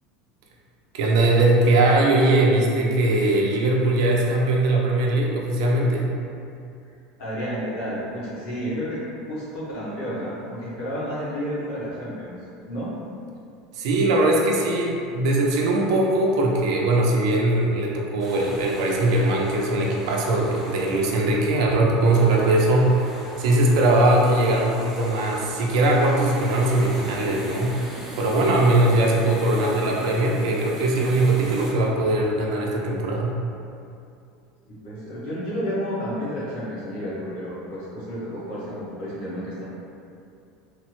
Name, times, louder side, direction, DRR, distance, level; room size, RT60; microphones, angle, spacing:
voice 1, 0.9-6.1 13.7-27.7 28.2-33.4, right 2 dB, 70° right, -1 dB, 0.5 m, -20 dB
voice 2, 7.2-9.0 9.3-12.4 12.7-12.9 34.7-39.6, equal, 75° left, -9 dB, 1.2 m, -31 dB
sound 1, 18.2-31.7, equal, 5° right, 0.5 m, -39 dB
3.2 x 2.1 x 3.0 m, 2.5 s
supercardioid pair, 165°, 3 cm